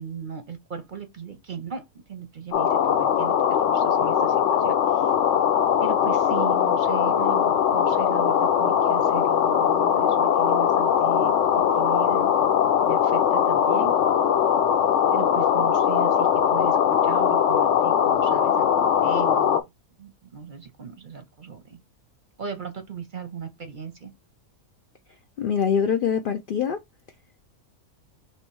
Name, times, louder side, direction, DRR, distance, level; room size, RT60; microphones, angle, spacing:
voice 1, 0.0-5.1 5.8-12.3 12.8-13.9 15.1-16.8 17.0-19.6 20.0-21.8 22.4-24.1, right 7 dB, 45° right, 0.7 m, -38 dB
sound 1, 2.5-19.6, left 8 dB, 65° left, 0.8 m, -21 dB
voice 2, 25.4-26.8, left 7 dB, 85° left, 0.4 m, -24 dB
3.1 x 3.0 x 4.5 m
omnidirectional pair, 1.5 m